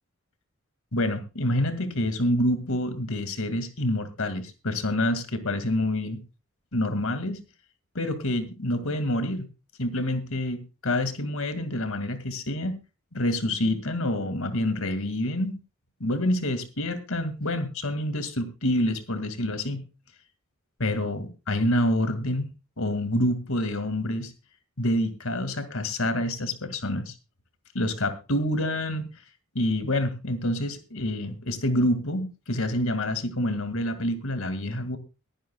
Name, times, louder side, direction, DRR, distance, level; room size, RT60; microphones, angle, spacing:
voice 1, 0.9-6.2 6.7-7.4 7.9-9.5 9.8-12.8 13.1-15.6 16.0-19.8 20.8-22.5 22.8-24.3 24.8-27.1 27.7-29.1 29.5-35.0, left 1 dB, 75° left, 10 dB, 2.2 m, -27 dB
22.5 x 10.5 x 2.3 m, 0.29 s
head